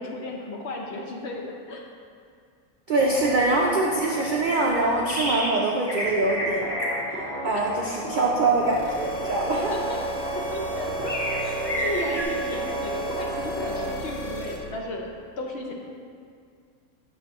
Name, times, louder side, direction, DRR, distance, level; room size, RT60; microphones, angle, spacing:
voice 1, 0.0-1.8 9.5-10.0 10.5-15.1 15.4-15.7, left 2 dB, 60° left, 0 dB, 0.8 m, -34 dB
voice 2, 2.9-6.7 7.1-9.8 12.0-12.3, right 2 dB, 75° right, -2 dB, 0.4 m, -24 dB
sound 1, 3.0-5.3 6.0-8.7 9.0-14.0, equal, 30° right, 0.9 m, -35 dB
sound 2, 5.0-5.6 5.9-12.2, equal, 25° left, 0.9 m, -33 dB
sound 3, 8.6-14.6, right 2 dB, 80° left, 1.3 m, -33 dB
6.8 x 6.2 x 3.0 m, 2.2 s
omnidirectional pair, 1.5 m